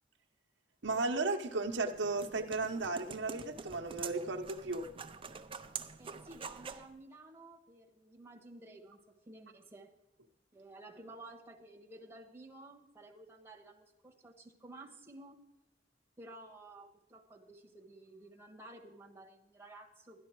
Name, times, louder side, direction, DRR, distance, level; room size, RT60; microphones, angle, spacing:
voice 1, 0.8-4.9, right 3 dB, 80° right, 3 dB, 0.9 m, -35 dB
sound 1, 1.6-6.9, right 6 dB, 30° right, 0.6 m, -46 dB
voice 2, 6.0-9.9 10.5-15.4 16.2-20.2, right 2 dB, 15° right, 1 dB, 1.3 m, -53 dB
12.5 x 10.5 x 4.6 m, 0.95 s
head